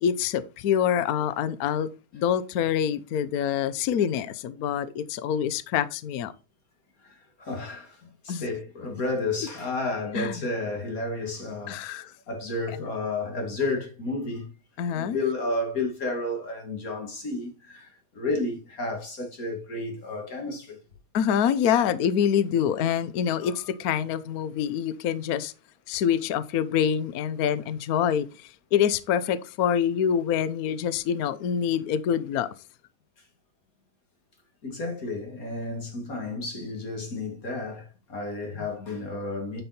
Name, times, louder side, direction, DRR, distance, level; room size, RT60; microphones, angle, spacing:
voice 1, 0.0-6.3 8.3-8.4 10.2-10.5 11.7-12.1 14.8-15.2 21.1-25.5 25.9-32.5, left 8 dB, 65° left, 0.9 m, -26 dB
voice 2, 7.0-12.0 12.3-14.5 14.9-20.8 23.4-23.6 34.6-39.6, left 2 dB, 40° left, 2.8 m, -32 dB
9.6 x 5.5 x 4.3 m
omnidirectional pair, 2.4 m